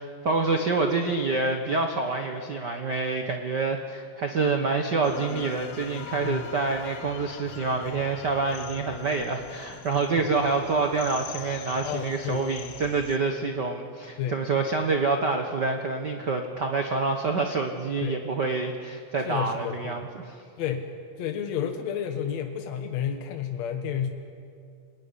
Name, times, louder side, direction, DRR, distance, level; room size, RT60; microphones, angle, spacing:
voice 1, 0.0-20.4, right 3 dB, 85° right, 4 dB, 0.9 m, -27 dB
sound 1, 5.0-13.2, left 9 dB, 85° left, 3.0 m, -43 dB
voice 2, 6.1-6.5 11.8-12.6 14.2-14.4 18.0-18.2 19.2-20.0 20.6-20.9 21.2-24.1, left 8 dB, 60° left, 5 dB, 2.1 m, -31 dB
28.0 x 18.5 x 9.9 m, 2.4 s
omnidirectional pair, 4.2 m